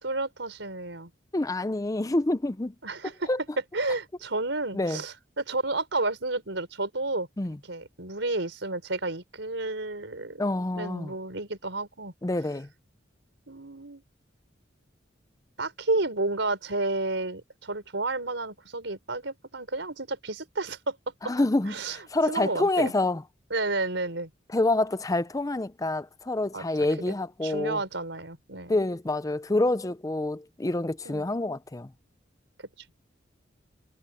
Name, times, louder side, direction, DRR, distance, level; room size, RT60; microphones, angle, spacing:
voice 1, 0.0-1.1 2.8-3.3 3.7-7.3 7.7-10.4 10.7-12.1 13.5-14.0 15.6-21.0 21.7-22.0 22.3-22.9 23.5-24.3 26.5-26.7 27.1-27.2 27.4-28.8 31.0-31.3, right 2 dB, 85° right, 4.4 m, -31 dB
voice 2, 1.3-2.7 3.3-3.4 4.7-5.0 7.4-7.6 10.4-11.1 12.2-12.7 21.2-23.2 24.5-27.8 28.7-31.9, left 2 dB, 20° left, 0.5 m, -27 dB
head